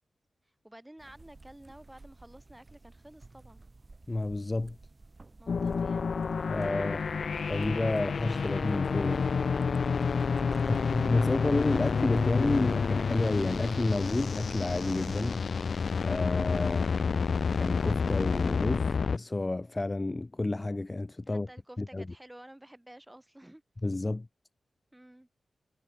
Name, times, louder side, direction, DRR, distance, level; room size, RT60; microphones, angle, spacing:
voice 1, 0.6-3.6 5.4-6.1 10.5-11.5 16.7-17.2 21.3-23.6 24.9-25.3, right 1 dB, 10° right, 7.3 m, -53 dB
sound 1, 1.0-15.2, right 3 dB, 35° right, 7.0 m, -51 dB
voice 2, 4.1-4.8 6.5-7.0 7.5-9.2 10.7-15.4 16.0-16.8 17.5-21.5 21.9-22.0 23.8-24.3, left 2 dB, 30° left, 0.9 m, -30 dB
sound 2, 5.5-19.2, left 5 dB, 65° left, 0.5 m, -29 dB
cardioid pair, 55°, 0 cm